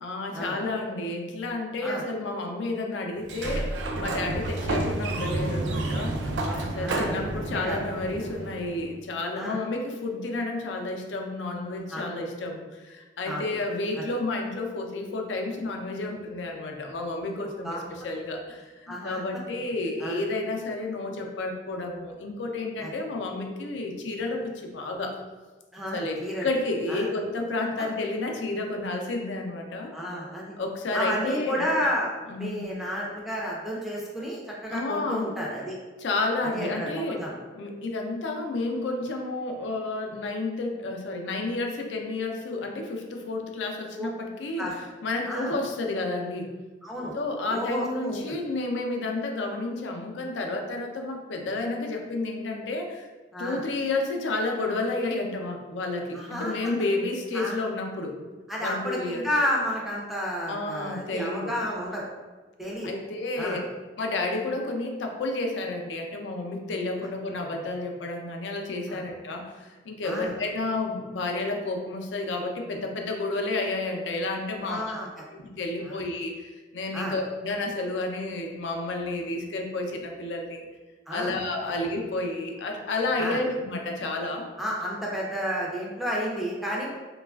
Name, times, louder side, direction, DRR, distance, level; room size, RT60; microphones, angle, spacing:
voice 1, 0.0-3.7 4.0-6.2 6.6-25.1 25.9-29.9 30.6-31.7 32.3-32.6 34.7-35.3 36.0-37.2 37.6-44.7 45.0-46.5 47.1-53.1 53.4-58.1 58.6-59.3 60.5-61.5 62.8-63.6 64.0-74.9 75.3-80.6 81.1-84.5, left 2 dB, 85° left, 2 dB, 0.4 m, -31 dB
Sliding door, 3.2-8.9, right 2 dB, 75° right, 0.3 m, -30 dB
voice 2, 6.5-7.2 7.5-7.8 9.3-9.6 11.9-12.0 13.3-13.4 13.9-14.0 17.6-17.8 18.9-19.2 20.0-20.2 22.8-22.9 25.7-26.5 26.9-27.1 29.9-30.6 30.9-32.1 32.4-35.8 36.5-37.3 44.0-44.1 44.6-44.7 45.3-45.5 46.8-47.2 47.5-48.4 53.3-53.6 56.1-56.5 57.3-57.6 58.5-62.1 62.6-62.9 63.4-63.6 68.9-69.0 70.0-70.3 74.7-75.1 75.8-76.0 76.9-77.1 81.1-81.3 83.2-83.4 84.6-86.9, equal, ahead, -5 dB, 0.4 m, -31 dB
3.1 x 2.3 x 2.3 m, 1.3 s
head